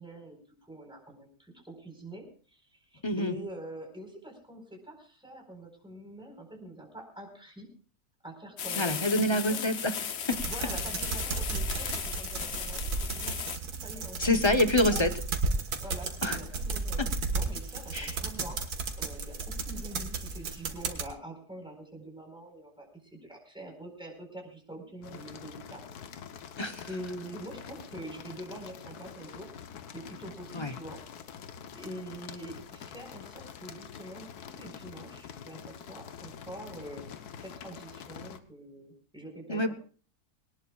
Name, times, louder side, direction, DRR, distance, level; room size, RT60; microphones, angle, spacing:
voice 1, 0.0-2.2 2.5-7.7 8.2-9.6 10.4-13.4 13.8-14.4 14.9-15.1 15.8-17.0 17.3-18.6 19.0-25.8 26.9-29.5 29.9-31.0 31.7-37.0 37.4-39.7, right 1 dB, 5° right, 1 dB, 4.4 m, -45 dB
voice 2, 3.0-3.3 8.8-9.9 10.3-10.4 14.2-15.1 16.2-16.4 17.0-17.1 17.9-18.1 26.6-26.9 30.5-30.7 39.5-39.7, left 1 dB, 25° left, 9 dB, 0.7 m, -26 dB
sound 1, 8.6-13.6, left 7 dB, 50° left, 1.0 m, -36 dB
sound 2, 10.3-21.1, right 3 dB, 85° right, 2.1 m, -34 dB
sound 3, 25.0-38.4, left 7 dB, 90° left, 1.5 m, -46 dB
21.0 x 18.5 x 2.4 m, 0.40 s
omnidirectional pair, 1.6 m